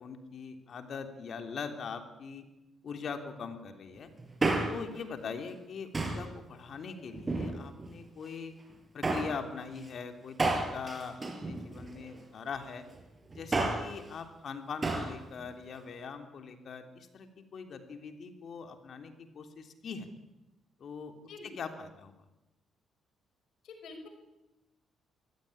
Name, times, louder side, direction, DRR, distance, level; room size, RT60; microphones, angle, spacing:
voice 1, 0.0-2.4 2.8-4.1 4.7-8.5 8.9-12.9 13.3-20.1 20.8-22.2, left 5 dB, 55° left, 7 dB, 3.4 m, -42 dB
Male speech man speaking, 4.2-5.0 5.9-6.3 7.1-7.9 9.0-9.4 10.4-12.1 13.3-14.0 14.8-15.2 15.4-15.5, right 2 dB, 25° right, 4.9 m, -31 dB
voice 2, 23.6-24.1, left 3 dB, 75° left, 6 dB, 5.7 m, -48 dB
23.5 x 17.0 x 10.0 m, 0.98 s
cardioid pair, 90°, 0 cm